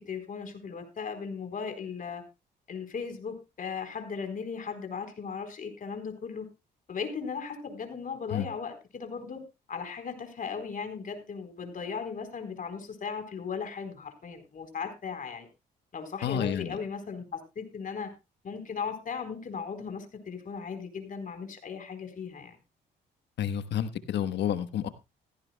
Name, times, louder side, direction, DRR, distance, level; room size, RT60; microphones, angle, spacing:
voice 1, 0.0-2.2 2.7-6.5 6.9-9.4 9.7-15.5 15.9-18.1 18.4-22.6, left 6 dB, 50° left, 4.0 m, -37 dB
voice 2, 16.2-16.8 23.4-24.9, left 9 dB, 75° left, 1.2 m, -30 dB
16.5 x 15.0 x 2.2 m
cardioid pair, 80°, 18 cm